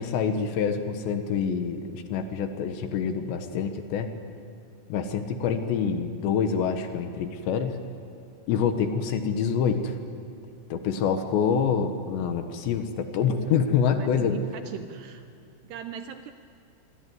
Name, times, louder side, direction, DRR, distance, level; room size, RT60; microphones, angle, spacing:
voice 1, 0.0-4.1 4.9-7.8 8.5-9.9 10.7-14.4, left 6 dB, 70° left, 7 dB, 3.2 m, -26 dB
voice 2, 14.7-15.2 15.7-16.3, right 8 dB, 80° right, 8 dB, 2.5 m, -38 dB
26.0 x 22.5 x 9.5 m, 2.4 s
omnidirectional pair, 5.6 m